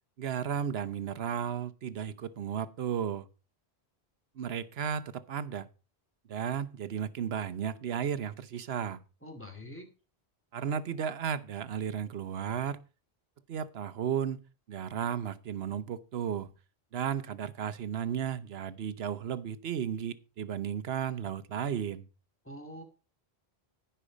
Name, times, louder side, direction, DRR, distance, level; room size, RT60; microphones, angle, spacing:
voice 1, 0.2-3.3 4.4-5.7 6.3-9.0 10.5-12.8 13.5-14.4 14.7-16.5 16.9-22.1, right 8 dB, 75° right, 1.0 m, -34 dB
voice 2, 9.2-9.9 22.4-22.8, left 1 dB, 10° left, 2.5 m, -44 dB
15.0 x 5.6 x 5.1 m
omnidirectional pair, 1.1 m